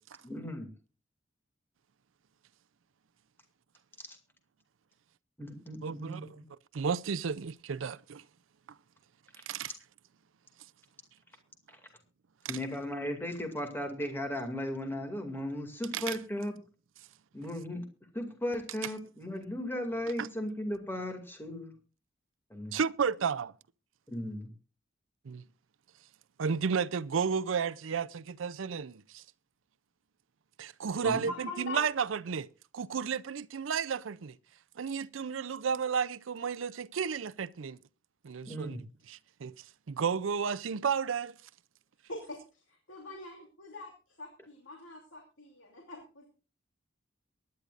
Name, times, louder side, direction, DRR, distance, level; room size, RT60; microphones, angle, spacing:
voice 1, 0.2-0.7 4.0-4.2 5.4-6.4 11.7-11.8 12.5-16.5 17.3-17.8 18.1-21.7 22.5-22.7 24.1-24.5 31.0-31.2 38.5-38.8, left 1 dB, 10° left, 2.3 m, -36 dB
voice 2, 5.8-6.2 6.7-8.2 9.5-9.7 12.4-12.6 15.9-16.2 20.2-20.3 22.7-23.5 25.2-25.4 26.4-29.2 30.6-31.3 31.6-32.5 32.7-34.4 34.8-37.8 38.2-38.8 39.1-41.3, right 6 dB, 80° right, 0.5 m, -32 dB
voice 3, 31.0-31.9 42.1-43.9 44.2-46.3, left 2 dB, 75° left, 2.9 m, -43 dB
23.0 x 10.5 x 2.5 m
head